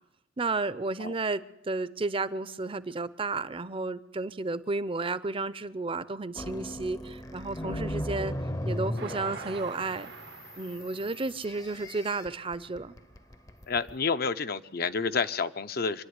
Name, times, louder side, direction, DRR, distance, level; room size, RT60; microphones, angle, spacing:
voice 1, 0.4-8.3 8.6-10.1 10.6-12.9, right 3 dB, 30° right, 0.6 m, -32 dB
sound 1, 6.4-14.0, left 1 dB, 20° left, 0.7 m, -37 dB
voice 2, 7.6-7.9 13.7-16.0, left 5 dB, 55° left, 0.7 m, -30 dB
Train, 9.0-12.4 12.9-13.0 13.3-13.4, right 5 dB, 65° right, 0.9 m, -46 dB
26.0 x 11.0 x 9.6 m
head